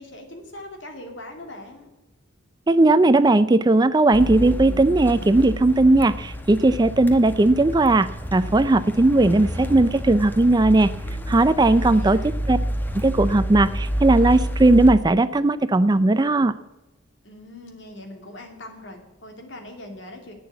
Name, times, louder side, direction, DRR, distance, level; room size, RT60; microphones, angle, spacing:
voice 1, 0.0-1.9 11.8-12.3 17.2-20.3, left 1 dB, 60° left, 3 dB, 2.8 m, -41 dB
voice 2, 2.7-10.9 11.3-12.6 13.0-16.5, right 2 dB, 20° right, 14 dB, 0.4 m, -17 dB
sound 1, 4.1-15.0, equal, 10° left, 1.0 m, -29 dB
11.0 x 8.8 x 8.4 m, 1.0 s
head